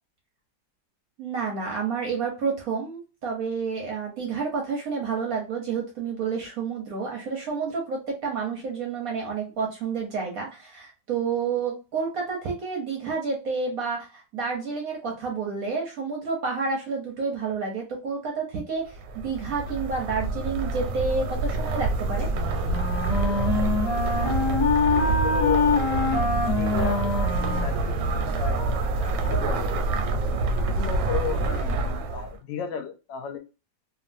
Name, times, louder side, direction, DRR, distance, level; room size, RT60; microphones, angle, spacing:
voice 1, 1.2-22.3, right 5 dB, 65° right, 0 dB, 0.9 m, -29 dB
sound 1, 18.9-32.4, right 3 dB, 85° right, 1.3 m, -27 dB
Wind instrument woodwind instrument, 22.3-28.4, left 4 dB, 25° left, 0.5 m, -25 dB
voice 2, 24.4-26.1 26.6-27.1 27.3-28.0 28.2-29.8 30.5-33.4, left 7 dB, 75° left, 7 dB, 1.2 m, -34 dB
3.0 x 2.5 x 2.5 m, 0.30 s
omnidirectional pair, 2.1 m